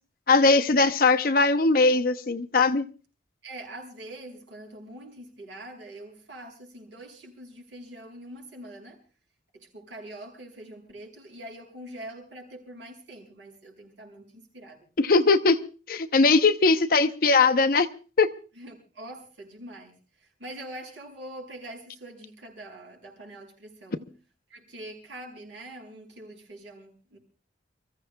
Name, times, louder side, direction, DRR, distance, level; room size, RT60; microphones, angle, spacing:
voice 1, 0.3-2.8 15.0-15.6 15.9-17.9 18.2-18.3, left 3 dB, 50° left, 0.7 m, -20 dB
voice 2, 3.4-9.0 9.5-14.9 18.6-24.1 24.5-27.2, right 1 dB, 85° right, 6.0 m, -44 dB
29.5 x 15.0 x 2.2 m
head